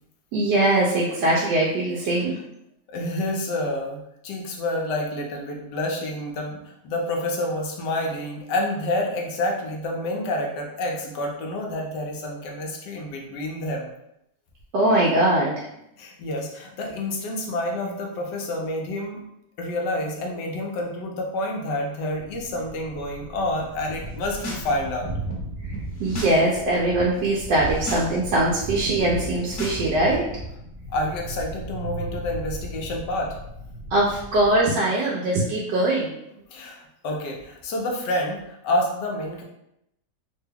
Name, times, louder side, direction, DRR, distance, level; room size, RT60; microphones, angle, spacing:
voice 1, 0.3-2.3 14.7-15.7 26.0-30.2 33.9-36.1, right 1 dB, 80° right, -4 dB, 1.2 m, -21 dB
voice 2, 2.9-6.6 6.8-13.9 16.0-19.2 19.6-25.1 30.9-33.4 36.5-39.4, left 1 dB, 85° left, 1 dB, 1.3 m, -28 dB
Thunder, 22.2-34.8, right 1 dB, 60° right, 0.8 m, -36 dB
sound 1, 24.1-24.7 25.0-26.4 26.7-27.1 27.5-28.1 28.4-30.4, equal, 55° left, 1.1 m, -36 dB
3.4 x 2.2 x 3.3 m, 0.81 s
omnidirectional pair, 1.8 m